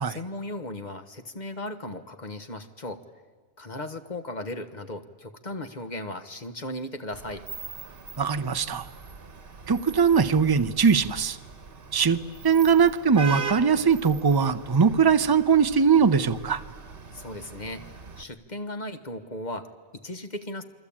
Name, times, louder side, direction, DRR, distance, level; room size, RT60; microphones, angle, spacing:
voice 1, 0.0-3.0 3.6-7.4 17.1-17.8 18.2-20.6, left 1 dB, 30° left, 8 dB, 1.4 m, -36 dB
Vehicle horn car horn honking / Traffic noise roadway noise, 7.1-18.2, right 5 dB, 40° right, 1.5 m, -41 dB
voice 2, 8.2-8.8 9.7-11.4 11.9-12.2 12.4-16.6, right 6 dB, 25° right, 10 dB, 0.5 m, -21 dB
28.5 x 23.0 x 8.8 m, 1.4 s
omnidirectional pair, 1.5 m